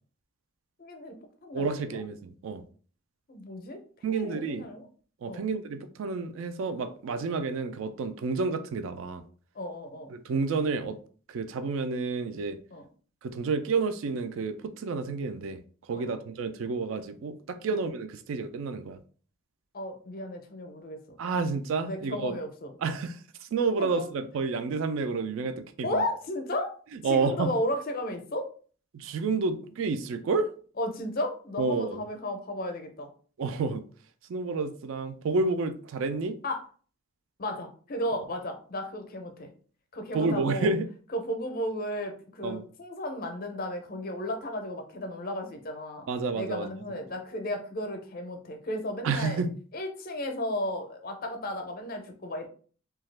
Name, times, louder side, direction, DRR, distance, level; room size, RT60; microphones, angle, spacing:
voice 1, 0.8-1.2 1.4-2.0 3.3-4.9 5.3-5.5 9.6-10.1 12.7-12.9 15.9-16.2 17.7-17.8 19.7-21.2 21.8-22.7 24.0-24.1 25.8-26.7 27.1-28.5 30.8-33.1 36.4-36.6 37.4-39.5 39.9-40.7 41.1-46.1 46.4-49.4 49.7-52.5, left 1 dB, 45° left, 0.5 m, -34 dB
voice 2, 1.5-2.6 4.0-4.6 5.2-9.2 10.1-11.0 11.3-12.6 13.2-15.6 15.9-19.0 21.2-22.3 22.8-23.2 23.5-26.0 27.0-27.5 28.9-30.5 31.6-32.0 33.4-33.8 34.3-36.4 40.1-40.9 42.4-42.6 46.1-46.7 49.0-49.5, right 4 dB, 65° right, 0.3 m, -30 dB
2.8 x 2.3 x 3.2 m
head